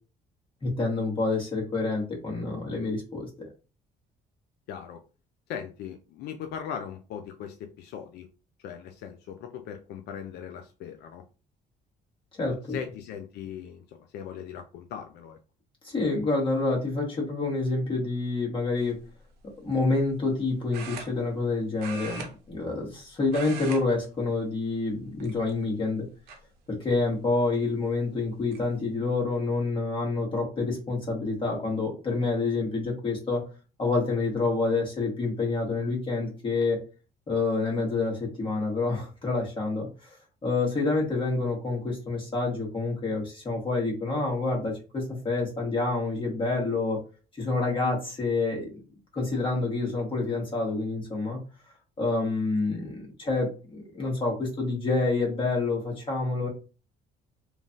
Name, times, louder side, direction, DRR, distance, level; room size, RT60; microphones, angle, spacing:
voice 1, 0.6-3.5 12.4-12.6 15.8-19.0 19.6-26.1 26.7-33.4 33.8-36.8 37.3-40.2 40.4-47.0 47.4-48.7 49.1-51.4 52.0-56.5, left 3 dB, 30° left, -1 dB, 1.5 m, -28 dB
voice 2, 4.7-5.0 5.5-8.3 8.6-11.2 12.4-15.4, left 8 dB, 80° left, 5 dB, 0.4 m, -39 dB
sound 1, 18.8-19.1 20.7-21.5 21.8-23.0 23.2-23.8 24.1-24.4 25.2-25.7 26.3-26.4 27.8-27.9 28.2-28.6, right 5 dB, 85° right, 0.7 m, -40 dB
3.1 x 2.3 x 2.6 m, 0.33 s
cardioid pair, 110°, 17 cm